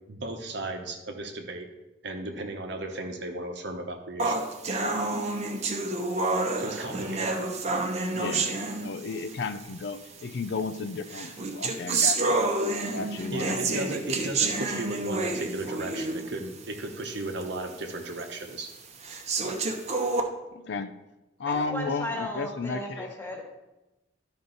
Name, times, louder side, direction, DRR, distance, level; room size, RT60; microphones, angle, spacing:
voice 1, 0.1-1.7 2.0-4.4 6.6-7.3 13.3-18.7, right 2 dB, 65° right, 4 dB, 1.0 m, -35 dB
sound 1, 4.2-9.3 10.2-10.3 11.1-16.4 16.8-16.9 17.4-17.5 18.2-18.3 19.0-20.2, right 3 dB, 35° right, 0.8 m, -28 dB
voice 2, 8.1-8.5 8.8-12.4 12.9-13.7 20.5-20.9 21.4-23.1, left 4 dB, 65° left, 10 dB, 0.5 m, -33 dB
voice 3, 21.4-23.4, left 1 dB, 10° left, 1 dB, 1.4 m, -35 dB
11.5 x 5.3 x 4.0 m, 1.0 s
head